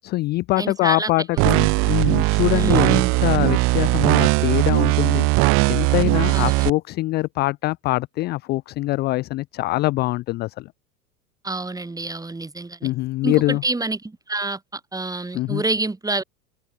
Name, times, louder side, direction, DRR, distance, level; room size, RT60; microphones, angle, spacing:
voice 1, 0.0-5.3 5.7-10.7 12.8-13.6 15.3-15.6, left 19 dB, 20° left, 0.5 m, -23 dB
voice 2, 0.6-1.1 2.5-3.1 6.3-6.7 11.4-12.9 13.2-16.2, right 2 dB, 5° right, 2.8 m, -28 dB
sound 1, 1.4-6.7, right 28 dB, 30° right, 0.5 m, -19 dB
open air
figure-of-eight pair, 85°, 48 cm